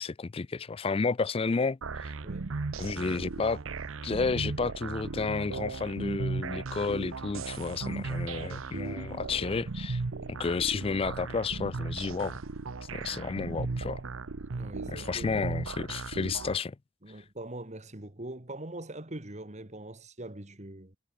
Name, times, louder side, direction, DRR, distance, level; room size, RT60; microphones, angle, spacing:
voice 1, 0.0-2.1 2.8-3.6 4.0-10.0 10.3-12.4 12.9-14.0 14.9-16.8, left 4 dB, 30° left, 0.4 m, -31 dB
sound 1, 1.8-16.6, right 3 dB, 80° right, 0.8 m, -36 dB
voice 2, 2.2-2.5 9.2-9.3 14.5-15.4 17.0-21.0, right 1 dB, 35° right, 2.0 m, -42 dB
head